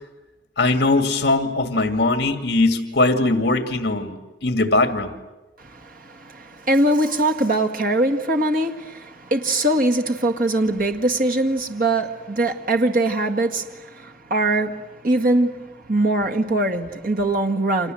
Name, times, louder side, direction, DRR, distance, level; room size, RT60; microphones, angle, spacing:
voice 1, 0.6-5.1, left 2 dB, 60° left, 2.2 m, -20 dB
voice 2, 5.6-17.9, right 1 dB, 50° right, 2.0 m, -22 dB
30.0 x 25.5 x 7.8 m
head